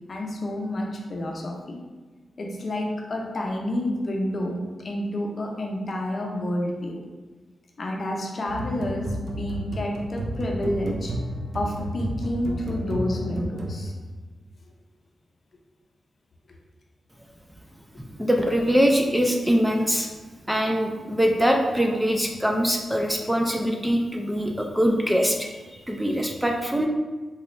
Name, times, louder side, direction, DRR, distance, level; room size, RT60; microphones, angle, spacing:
voice 1, 0.1-1.8 2.4-7.0 7.8-11.1 11.5-13.9, left 1 dB, 50° left, 0 dB, 0.6 m, -29 dB
sound 1, 8.5-14.2, right 1 dB, 65° right, 0.5 m, -32 dB
voice 2, 18.2-20.1 20.5-26.9, equal, 5° right, 2 dB, 0.3 m, -23 dB
4.1 x 2.3 x 3.1 m, 1.3 s
cardioid pair, 80°, 0 cm